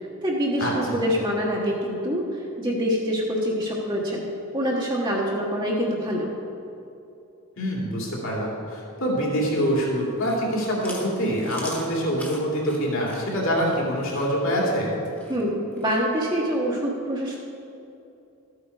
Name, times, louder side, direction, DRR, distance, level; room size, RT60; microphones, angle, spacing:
voice 1, 0.0-4.3 4.5-6.3 15.3-17.3, equal, 20° right, -4 dB, 1.2 m, -25 dB
voice 2, 0.6-1.0 7.6-14.9, equal, 60° left, -3 dB, 2.8 m, -25 dB
Chewing mastication, 10.0-16.0, left 1 dB, 10° left, 1.4 m, -42 dB
13.0 x 8.5 x 4.8 m, 2.7 s
head